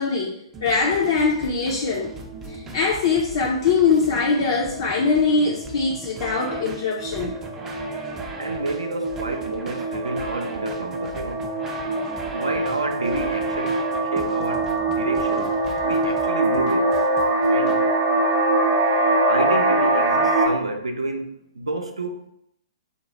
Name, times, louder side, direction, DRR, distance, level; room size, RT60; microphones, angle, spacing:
voice 1, 0.0-2.1 2.5-7.3, left 4 dB, 55° left, -2 dB, 0.5 m, -22 dB
sound 1, 0.5-17.8, right 3 dB, 15° right, 0.4 m, -39 dB
sound 2, 2.1-2.6 3.2-3.3 3.6-3.9 4.2-20.5, right 2 dB, 35° right, 0.8 m, -24 dB
voice 2, 8.4-11.4 12.3-13.9 14.1-15.5 15.8-16.9 17.5-18.0 19.3-22.3, right 2 dB, 75° right, 5 dB, 0.5 m, -29 dB
2.9 x 2.3 x 4.0 m, 0.75 s
figure-of-eight pair, 115°, 3 cm